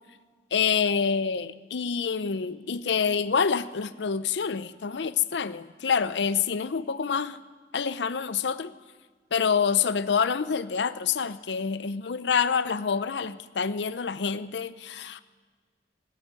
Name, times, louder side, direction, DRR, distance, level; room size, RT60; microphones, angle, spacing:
voice 1, 0.5-7.4 7.7-8.7 9.3-15.2, left 6 dB, 70° left, 14 dB, 0.6 m, -27 dB
16.5 x 7.7 x 9.4 m, 1.5 s
head